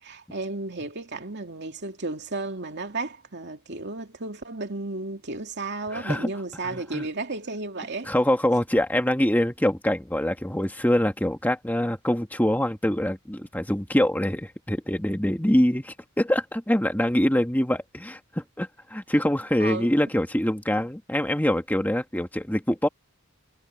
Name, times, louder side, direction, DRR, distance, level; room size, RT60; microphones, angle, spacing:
voice 1, 0.0-8.1 19.6-19.9, right 3 dB, 55° right, 2.6 m, -33 dB
voice 2, 5.9-6.3 6.6-7.0 8.0-22.9, left 1 dB, 10° left, 1.6 m, -24 dB
head